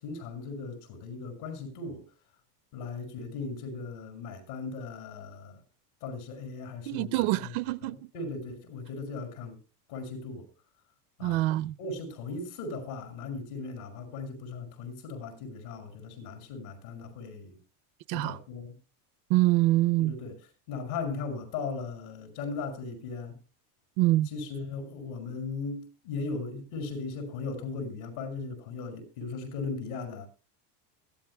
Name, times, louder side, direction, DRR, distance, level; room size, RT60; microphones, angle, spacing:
voice 1, 0.0-2.0 2.7-5.6 6.0-7.5 7.8-9.6 9.9-10.5 11.2-11.4 11.8-17.6 18.1-18.8 20.1-23.4 24.3-30.3, left 4 dB, 70° left, 7.0 m, -38 dB
voice 2, 6.9-8.0 11.2-11.7 18.1-18.4 19.3-20.1 24.0-24.3, right 18 dB, 60° right, 0.7 m, -25 dB
23.0 x 16.0 x 2.3 m
supercardioid pair, 145°, 48 cm